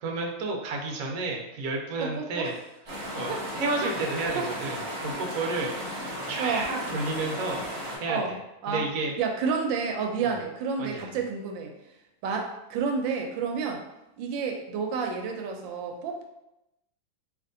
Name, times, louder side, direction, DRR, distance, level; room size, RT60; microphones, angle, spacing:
voice 1, 0.0-2.5 3.1-7.6 8.0-8.2 8.7-9.1 10.2-10.4 10.8-11.1, right 3 dB, 65° right, 1 dB, 0.9 m, -31 dB
voice 2, 2.0-2.5 3.3-3.5 3.8-3.9 4.4-4.5 5.7-5.8 6.4-6.7 8.1-8.3 8.6-8.9 9.2-11.7 12.2-13.8 14.2-16.2, right 5 dB, 90° right, 3 dB, 1.3 m, -30 dB
sound 1, 2.8-8.0, equal, 40° right, 1.1 m, -35 dB
3.3 x 2.9 x 2.6 m, 0.90 s
omnidirectional pair, 2.0 m